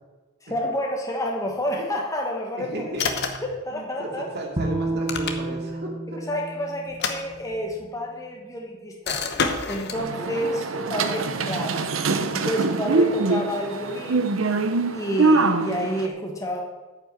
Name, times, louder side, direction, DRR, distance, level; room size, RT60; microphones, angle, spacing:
voice 1, 0.5-2.9 3.6-4.2 6.3-9.3 9.6-10.6 10.9-11.9 12.3-14.3 14.9-16.6, equal, 15° left, 0 dB, 1.3 m, -29 dB
voice 2, 2.6-3.2 3.7-6.2 10.2-11.0, right 1 dB, 50° right, -1 dB, 2.5 m, -35 dB
sound 1, 3.0-3.6 4.9-5.7 6.9-7.8 9.1-10.0, left 5 dB, 55° left, 1.0 m, -28 dB
Bowed string instrument, 4.6-7.8, right 2 dB, 25° right, 1.0 m, -31 dB
sound 2, 9.9-16.1, right 3 dB, 75° right, 0.8 m, -24 dB
9.6 x 5.5 x 8.3 m, 1.2 s
head